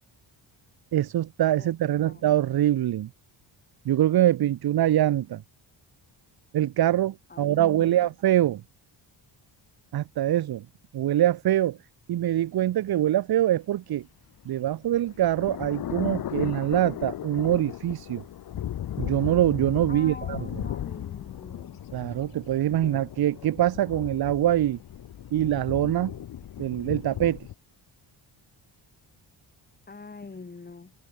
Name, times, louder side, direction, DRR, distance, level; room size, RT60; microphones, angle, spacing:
voice 1, 0.9-3.1 3.8-5.4 6.5-8.6 9.9-10.6 10.9-11.8 12.1-14.0 14.5-18.2 19.0-20.4 21.9-24.8 25.3-26.1 26.6-27.5, right 12 dB, 55° right, 0.8 m, -24 dB
voice 2, 2.0-2.4 7.3-8.1 19.9-21.8 29.9-30.9, left 4 dB, 20° left, 3.0 m, -44 dB
sound 1, 14.4-27.5, left 11 dB, 50° left, 0.8 m, -36 dB
open air
wide cardioid pair, 160°, 46 cm